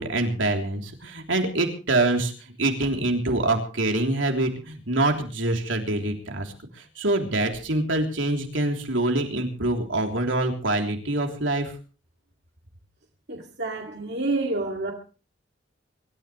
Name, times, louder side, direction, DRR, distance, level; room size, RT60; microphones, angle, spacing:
voice 1, 0.0-11.7, right 2 dB, 80° right, 3.3 m, -25 dB
voice 2, 13.3-14.9, right 2 dB, 60° right, 2.3 m, -28 dB
25.0 x 13.5 x 3.2 m
head